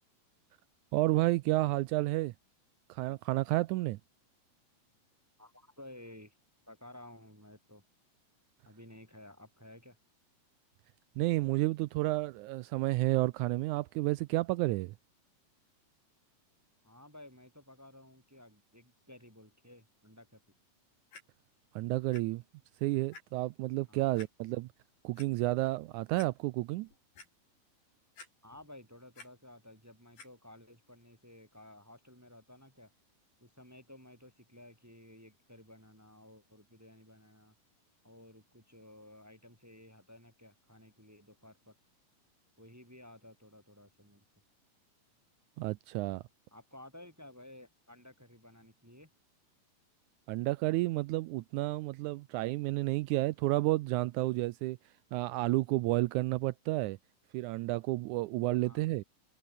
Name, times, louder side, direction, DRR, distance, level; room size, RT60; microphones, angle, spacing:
voice 1, 0.9-2.3 2.9-4.0 11.2-14.9 21.7-22.4 22.8-24.7 25.0-26.9 45.6-46.2 50.3-54.8 55.1-57.0 57.3-59.0, right 19 dB, 85° right, 1.7 m, -31 dB
voice 2, 5.4-6.3 6.7-7.8 8.6-10.0 16.8-20.4 23.9-24.1 28.4-32.9 33.4-37.5 38.0-41.8 42.6-44.2 46.5-49.1 58.6-59.0, left 1 dB, 5° right, 2.4 m, -54 dB
Clock, 21.1-21.2 22.1-22.2 22.7-22.8 23.1-23.2 24.2-24.3 24.9-25.3 25.8-25.9 26.2-26.3 26.7-27.3 28.2-28.7 28.9-29.3 30.2-30.3 31.0-31.1, left 4 dB, 85° left, 8.9 m, -51 dB
omnidirectional pair, 4.0 m